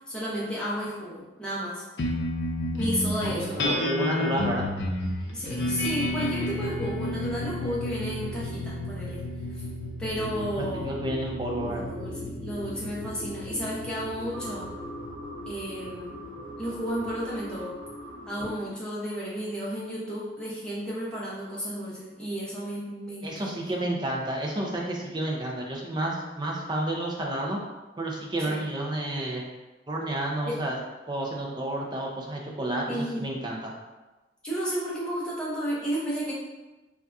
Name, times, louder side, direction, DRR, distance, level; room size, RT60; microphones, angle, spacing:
voice 1, 0.1-1.8 2.7-3.8 5.3-9.2 9.6-9.7 10.0-11.0 11.7-14.7 15.5-16.2 16.6-17.8 18.3-23.9 28.5-28.6 30.4-30.6 32.9-33.2 34.4-36.3, equal, 5° left, -8 dB, 0.8 m, -32 dB
sound 1, 2.0-16.7, left 1 dB, 80° left, 0.5 m, -32 dB
voice 2, 3.2-4.7 10.6-11.8 23.2-27.6 28.0-29.4 29.9-30.8 31.1-33.7, right 1 dB, 25° right, -1 dB, 0.5 m, -30 dB
sound 2, 10.1-18.5, left 1 dB, 80° right, 0.9 m, -40 dB
2.7 x 2.3 x 3.4 m, 1.1 s
head